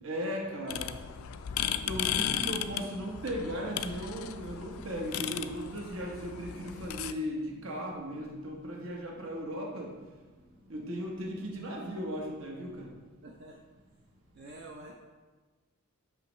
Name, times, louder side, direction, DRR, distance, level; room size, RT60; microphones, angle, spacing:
voice 1, 0.0-0.9 1.6-9.9 10.7-12.9, equal, 70° right, -1 dB, 1.0 m, -37 dB
sound 1, 0.7-7.1, left 10 dB, 75° left, 0.3 m, -36 dB
voice 2, 13.2-13.6 14.3-14.9, right 1 dB, 50° right, 0 dB, 0.4 m, -47 dB
6.0 x 5.5 x 3.1 m, 1.3 s
head